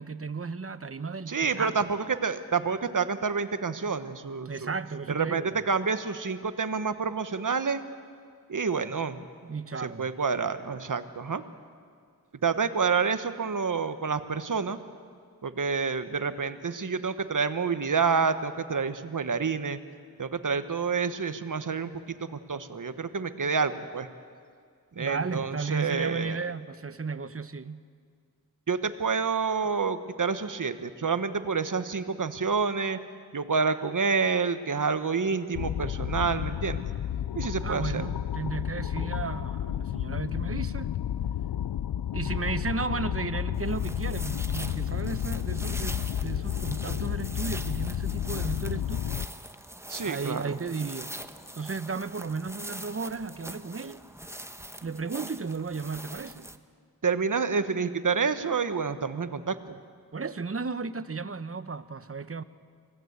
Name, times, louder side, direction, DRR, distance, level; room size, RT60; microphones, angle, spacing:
voice 1, 0.0-1.9 4.4-5.6 9.5-10.1 25.0-27.8 37.6-40.9 42.1-49.0 50.0-51.1 51.5-54.0 54.8-56.5 60.1-62.4, right 4 dB, 35° right, 13 dB, 1.0 m, -34 dB
voice 2, 1.3-4.7 5.1-7.8 8.5-9.3 9.8-11.4 12.4-14.8 15.4-19.8 20.2-22.2 22.5-24.1 25.0-26.4 28.7-33.0 33.3-36.9 37.3-38.0 49.9-50.6 57.0-59.8, right 5 dB, 55° right, 11 dB, 1.3 m, -28 dB
sound 1, 35.5-49.3, left 10 dB, 75° left, 0.6 m, -31 dB
sound 2, 43.5-56.6, right 1 dB, 5° right, 1.1 m, -43 dB
24.5 x 17.5 x 8.2 m, 2.1 s
cardioid pair, 50°, 38 cm